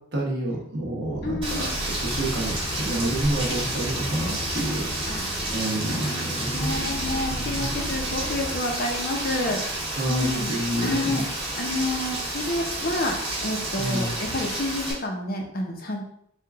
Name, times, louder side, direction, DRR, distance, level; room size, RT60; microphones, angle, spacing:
voice 1, 0.1-6.7 7.3-7.7 10.0-11.2 13.8-14.1, right 1 dB, 55° right, -2 dB, 1.2 m, -29 dB
sound 1, 0.8-8.6, left 1 dB, 20° left, 0.3 m, -36 dB
voice 2, 1.2-1.8 5.1-5.2 5.7-11.3 11.6-16.0, left 1 dB, 50° left, 1 dB, 0.7 m, -29 dB
Rain, 1.4-14.9, right 1 dB, 25° right, 1.7 m, -30 dB
4.7 x 2.4 x 3.5 m, 0.70 s
head